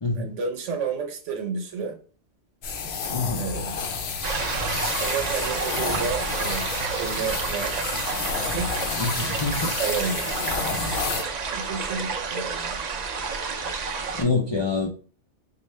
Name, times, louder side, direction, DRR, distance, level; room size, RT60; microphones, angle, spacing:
voice 1, 0.1-2.0 3.4-3.7 5.0-6.6 6.9-7.9 8.4-8.7 9.8-10.9 11.5-12.8, right 5 dB, 75° right, 1.1 m, -31 dB
sound 1, 2.6-11.2, left 5 dB, 65° left, 0.8 m, -30 dB
voice 2, 3.1-3.4 9.0-9.7 14.1-14.9, left 4 dB, 35° left, 0.4 m, -26 dB
sound 2, 4.2-14.2, right 5 dB, 55° right, 0.4 m, -30 dB
4.3 x 2.3 x 3.2 m
omnidirectional pair, 1.2 m